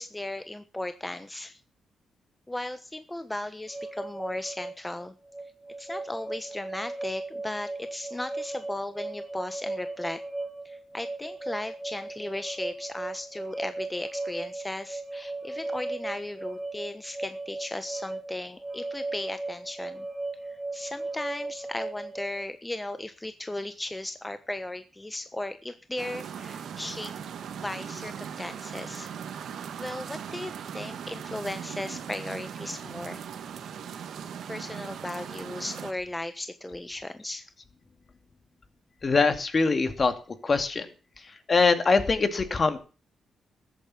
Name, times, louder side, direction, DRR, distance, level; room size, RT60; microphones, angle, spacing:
voice 1, 0.0-1.6 2.5-5.1 5.8-10.2 10.6-20.1 20.5-27.1 27.6-29.1 29.8-33.2 34.5-37.5, left 1 dB, 15° left, 10 dB, 1.2 m, -36 dB
sound 1, 3.7-22.4, right 2 dB, 10° right, 2.0 m, -37 dB
sound 2, 26.0-35.9, right 8 dB, 75° right, 1.7 m, -39 dB
voice 2, 39.0-40.1 40.4-40.9 41.2-42.8, left 4 dB, 45° left, 9 dB, 2.5 m, -23 dB
14.0 x 8.8 x 7.3 m, 0.36 s
supercardioid pair, 60°, 0 cm